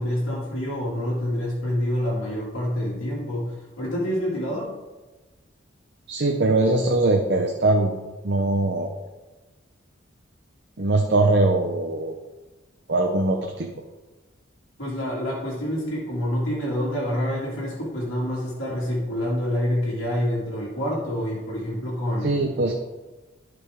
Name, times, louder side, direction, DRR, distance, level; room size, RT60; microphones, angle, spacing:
voice 1, 0.0-4.7 14.8-22.4, equal, 90° left, -6 dB, 2.3 m, -27 dB
voice 2, 6.1-7.9 8.2-9.0 10.8-12.2 12.9-13.7 22.2-22.7, right 2 dB, 55° right, 2 dB, 0.7 m, -21 dB
11.5 x 5.1 x 3.5 m, 1.2 s
head